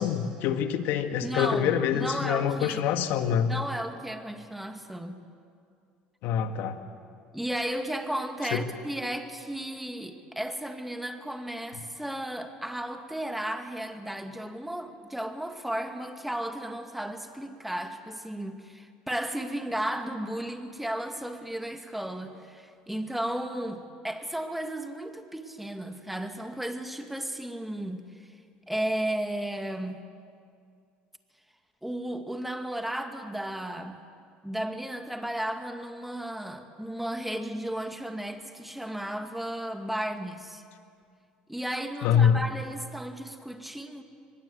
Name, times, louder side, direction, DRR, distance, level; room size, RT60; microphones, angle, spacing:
voice 1, 0.0-3.6 6.2-6.8 8.5-8.6 42.0-42.4, left 8 dB, 70° left, 7 dB, 1.8 m, -25 dB
voice 2, 1.2-2.8 3.5-5.2 7.3-28.3 28.7-30.0 31.8-34.0 34.4-40.6 41.5-44.0, right 1 dB, 5° right, 6 dB, 2.2 m, -34 dB
23.5 x 21.0 x 8.0 m, 2.4 s
hypercardioid pair, 75°, 4 cm